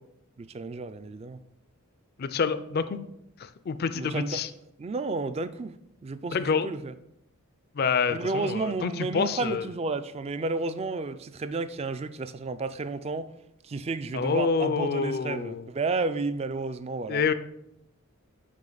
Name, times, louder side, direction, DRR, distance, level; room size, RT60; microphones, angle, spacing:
voice 1, 0.4-1.4 3.9-4.4 4.8-5.7 6.0-6.9 8.1-13.3 13.6-17.2, right 3 dB, 30° right, 13 dB, 0.3 m, -32 dB
voice 2, 2.2-3.0 3.4-4.5 6.3-6.7 7.8-9.6 14.1-15.7 17.1-17.3, left 5 dB, 45° left, 13 dB, 0.4 m, -27 dB
7.4 x 5.5 x 3.9 m, 0.80 s
head